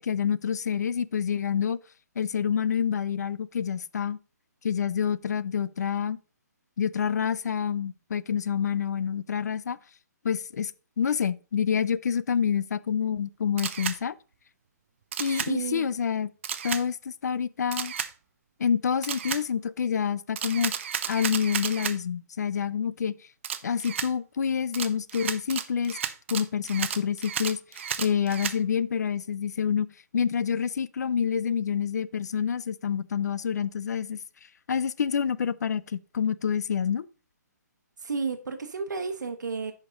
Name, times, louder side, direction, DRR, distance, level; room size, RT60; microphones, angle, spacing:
voice 1, 0.0-1.8 2.2-4.2 4.6-6.2 6.8-9.8 10.2-10.7 11.0-14.1 15.2-16.3 16.6-17.9 18.6-20.7 21.1-23.1 23.6-26.0 26.3-27.6 28.0-29.9 30.1-34.2 34.7-37.1, left 7 dB, 70° left, 0.5 m, -27 dB
Camera, 13.6-14.0 15.1-15.5 16.4-16.8 17.7-18.1 19.0-19.4 20.4-22.0 23.4-24.1 24.7-28.6, right 8 dB, 45° right, 0.6 m, -32 dB
voice 2, 15.3-15.9 38.0-39.7, right 5 dB, 85° right, 1.0 m, -32 dB
10.0 x 5.2 x 3.8 m
hypercardioid pair, 165°, 9 cm